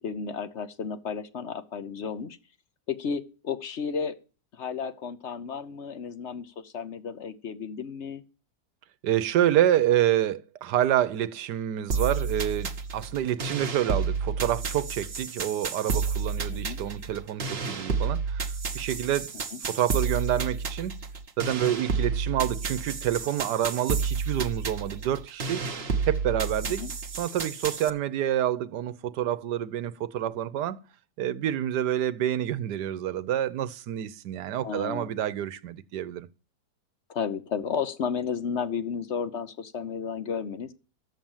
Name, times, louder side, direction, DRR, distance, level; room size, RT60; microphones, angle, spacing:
voice 1, 0.0-2.4 2.9-4.2 4.5-8.2 16.5-16.8 19.5-19.6 26.8-26.9 34.6-35.2 37.1-40.7, left 6 dB, 50° left, 0.9 m, -33 dB
voice 2, 9.0-19.3 19.6-21.0 21.4-25.7 26.1-26.8 27.2-30.8 31.2-36.3, right 11 dB, 80° right, 1.4 m, -28 dB
sound 1, 11.9-27.9, right 5 dB, 40° right, 1.1 m, -31 dB
11.5 x 7.5 x 7.2 m
omnidirectional pair, 1.8 m